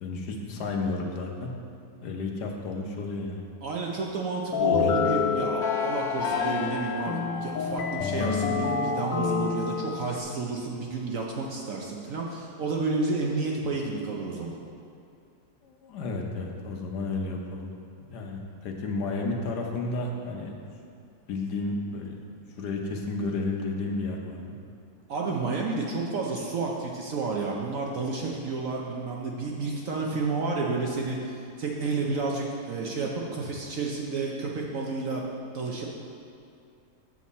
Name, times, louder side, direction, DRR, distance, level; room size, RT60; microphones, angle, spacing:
voice 1, 0.0-1.5 2.0-3.4 15.6-17.7 18.0-20.5 21.3-22.2 22.6-24.5, left 3 dB, 70° left, 1 dB, 1.4 m, -32 dB
voice 2, 3.6-14.6 25.1-35.2 35.5-35.8, right 3 dB, 60° right, -1 dB, 0.9 m, -31 dB
sound 1, 4.5-10.2, left 6 dB, 90° left, 1.4 m, -27 dB
7.5 x 7.2 x 4.1 m, 2.5 s
omnidirectional pair, 1.9 m